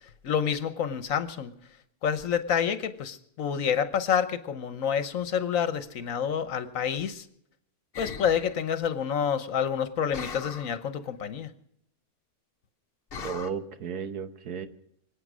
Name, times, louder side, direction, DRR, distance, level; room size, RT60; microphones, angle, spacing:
voice 1, 0.2-1.5 2.0-7.3 8.0-11.5, left 8 dB, 65° left, 12 dB, 1.2 m, -28 dB
sound 1, 7.9-8.6 10.1-10.8 13.1-13.5, left 6 dB, 45° left, 1.0 m, -39 dB
voice 2, 13.2-14.7, right 6 dB, 85° right, 10 dB, 1.5 m, -34 dB
25.0 x 8.7 x 6.2 m, 0.72 s
omnidirectional pair, 1.6 m